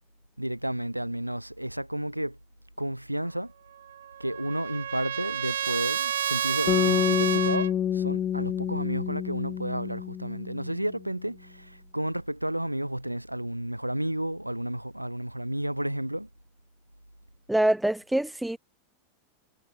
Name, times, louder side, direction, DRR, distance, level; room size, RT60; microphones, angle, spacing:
voice 1, 0.4-2.4 2.8-3.5 4.2-16.3, right 1 dB, 90° right, 2.3 m, -32 dB
Trumpet, 3.8-7.7, right 10 dB, 65° right, 1.0 m, -30 dB
sound 1, 6.7-10.9, left 9 dB, 25° left, 0.5 m, -28 dB
voice 2, 17.5-18.6, right 1 dB, 5° right, 0.8 m, -25 dB
figure-of-eight pair, 90°, 0 cm